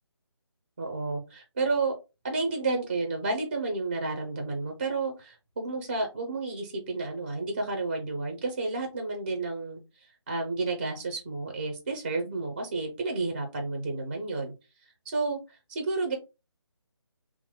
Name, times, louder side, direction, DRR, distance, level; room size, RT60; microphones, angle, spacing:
voice 1, 0.8-2.0 2.2-14.5 15.1-16.1, right 3 dB, 20° right, 3 dB, 0.4 m, -31 dB
2.9 x 2.2 x 3.4 m, 0.27 s
figure-of-eight pair, 160°, 15 cm